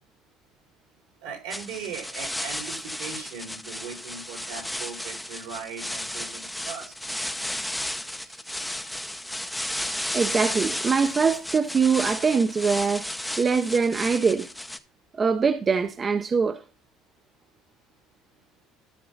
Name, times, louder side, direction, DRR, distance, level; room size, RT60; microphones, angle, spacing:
voice 1, 1.2-6.9 8.2-8.4, right 6 dB, 85° right, 4.9 m, -39 dB
sound 1, 1.5-14.8, left 1 dB, 5° left, 0.7 m, -33 dB
voice 2, 10.1-13.1 13.4-14.5 15.1-16.6, right 5 dB, 30° right, 0.8 m, -23 dB
13.0 x 6.0 x 4.0 m
cardioid pair, 120°, 0 cm